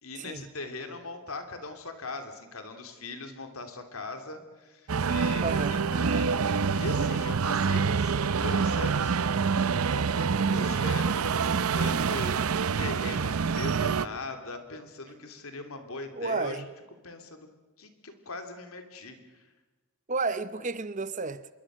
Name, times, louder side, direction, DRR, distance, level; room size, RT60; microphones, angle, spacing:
voice 1, 0.0-8.1 8.4-9.2 9.6-16.7 17.0-17.5 17.8-19.5, left 3 dB, 80° left, 3.0 m, -40 dB
sound 1, 4.9-14.1, right 5 dB, 90° right, 0.6 m, -26 dB
voice 2, 5.4-5.8 16.2-16.7 20.1-21.5, right 4 dB, 35° right, 0.7 m, -31 dB
26.0 x 22.5 x 6.3 m
head